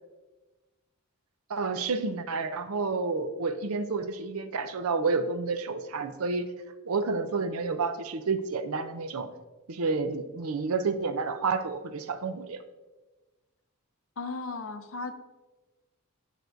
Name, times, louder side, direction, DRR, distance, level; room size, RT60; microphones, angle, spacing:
voice 1, 1.5-6.5 6.9-9.3 9.7-12.6, right 4 dB, 75° right, 10 dB, 0.6 m, -30 dB
voice 2, 14.2-15.1, left 3 dB, 65° left, 9 dB, 0.6 m, -35 dB
10.0 x 6.0 x 2.6 m, 1.2 s
head